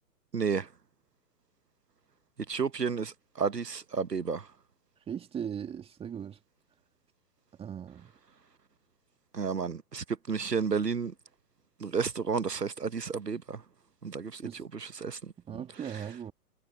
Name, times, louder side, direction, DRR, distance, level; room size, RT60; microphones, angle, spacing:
voice 1, 0.3-0.7 2.5-4.4 9.3-11.1 11.8-13.6 14.0-15.2 15.5-16.0, right 5 dB, 90° right, 1.2 m, -32 dB
voice 2, 5.1-6.4 7.6-8.1 14.4-14.6 15.5-16.3, right 8 dB, 10° right, 2.2 m, -38 dB
figure-of-eight pair, 125°, 47 cm